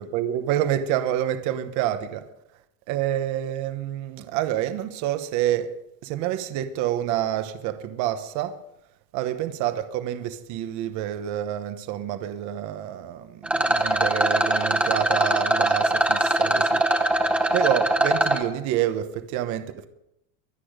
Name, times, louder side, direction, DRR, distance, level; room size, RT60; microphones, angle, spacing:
voice 1, 0.0-2.2 2.9-5.7 6.0-8.6 9.1-16.8 17.5-19.9, right 12 dB, 40° right, 1.1 m, -28 dB
Rattle, 13.4-18.4, right 1 dB, 5° right, 0.7 m, -22 dB
24.0 x 8.6 x 5.1 m
supercardioid pair, 175°, 43 cm